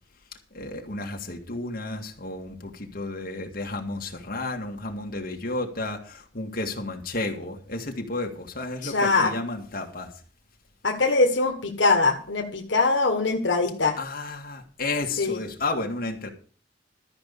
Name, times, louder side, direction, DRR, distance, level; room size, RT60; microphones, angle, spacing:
voice 1, 0.5-10.1 14.0-16.3, left 2 dB, 55° left, 2 dB, 2.1 m, -32 dB
voice 2, 8.8-9.3 10.8-14.0 15.2-15.4, left 3 dB, 85° left, 3 dB, 1.5 m, -22 dB
13.0 x 5.4 x 8.4 m, 0.41 s
head